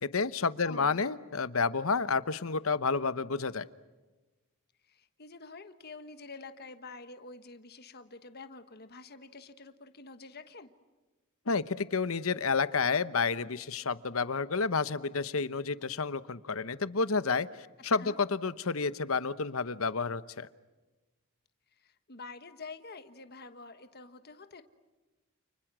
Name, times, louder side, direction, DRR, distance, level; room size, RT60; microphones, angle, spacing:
voice 1, 0.0-3.7 11.5-20.5, left 4 dB, 70° left, 14 dB, 1.0 m, -30 dB
voice 2, 0.6-1.0 4.9-10.7 18.0-18.2 21.8-24.6, left 3 dB, 50° left, 9 dB, 1.4 m, -47 dB
30.0 x 29.5 x 6.2 m, 1.2 s
head